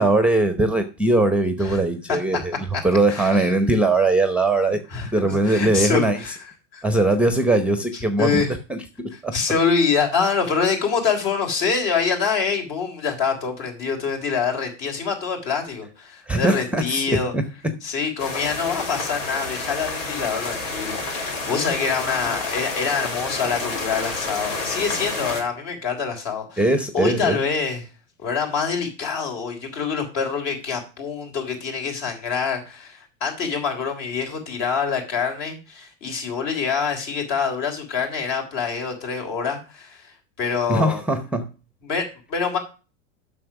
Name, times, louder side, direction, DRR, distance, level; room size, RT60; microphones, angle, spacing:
voice 1, 0.0-2.6 2.8-4.8 5.1-6.2 6.8-8.4 8.7-9.3 16.3-17.4 26.6-27.4 40.7-41.5, right 2 dB, 5° right, 0.7 m, -20 dB
voice 2, 3.1-3.5 4.9-6.5 6.7-6.8 7.9-8.5 9.1-17.3 17.8-26.7 26.9-27.9 28.2-41.0 41.8-42.6, left 5 dB, 55° left, 3.6 m, -25 dB
sound 1, 18.2-25.4, left 3 dB, 80° left, 3.8 m, -29 dB
7.6 x 6.2 x 5.9 m
supercardioid pair, 115°, 38 cm